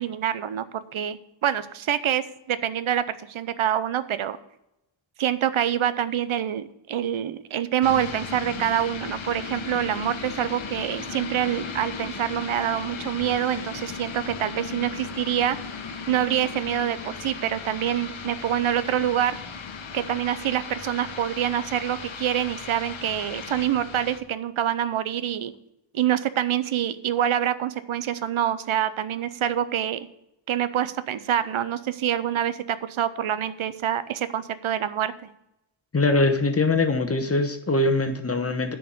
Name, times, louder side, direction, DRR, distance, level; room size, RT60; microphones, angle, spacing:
voice 1, 0.0-4.4 5.2-15.6 16.1-19.3 19.9-25.5 25.9-30.1 30.5-35.3, right 10 dB, 85° right, 14 dB, 0.7 m, -26 dB
sound 1, 7.8-24.2, left 5 dB, 75° left, 1.0 m, -36 dB
voice 2, 35.9-38.7, left 2 dB, 30° left, 6 dB, 0.9 m, -22 dB
10.0 x 4.7 x 7.5 m, 0.85 s
wide cardioid pair, 145°, 47 cm